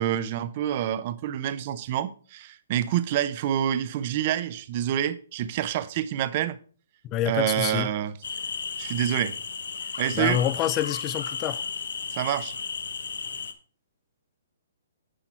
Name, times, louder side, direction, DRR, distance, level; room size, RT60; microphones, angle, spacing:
voice 1, 0.0-6.6 7.3-8.1 8.8-9.3 10.0-10.4 12.1-12.6, right 11 dB, 35° right, 0.6 m, -27 dB
voice 2, 7.0-7.9 10.1-11.6, left 12 dB, 20° left, 0.3 m, -27 dB
sound 1, 8.2-13.5, left 5 dB, 75° left, 0.9 m, -34 dB
10.0 x 5.7 x 4.4 m
hypercardioid pair, 160°, 0 cm